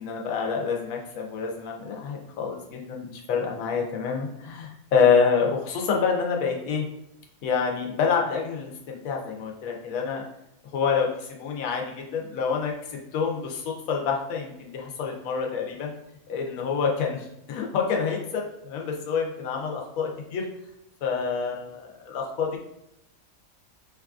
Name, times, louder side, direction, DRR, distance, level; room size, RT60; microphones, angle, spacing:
voice 1, 0.0-6.9 7.4-10.2 10.7-15.9 16.3-20.4 21.0-22.6, left 6 dB, 80° left, 0 dB, 1.1 m, -27 dB
5.1 x 2.3 x 2.4 m, 0.79 s
omnidirectional pair, 1.4 m